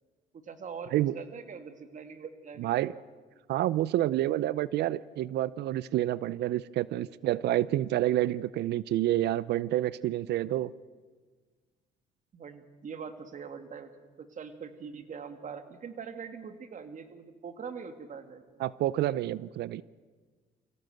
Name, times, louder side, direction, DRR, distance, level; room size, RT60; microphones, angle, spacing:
voice 1, 0.3-3.0 12.3-13.9 14.2-18.6, right 6 dB, 45° right, 9 dB, 2.2 m, -43 dB
voice 2, 2.6-2.9 3.5-10.7 18.6-19.8, right 14 dB, 70° right, 20 dB, 0.6 m, -28 dB
24.0 x 16.5 x 7.8 m, 1.5 s
cardioid pair, 95°, 18 cm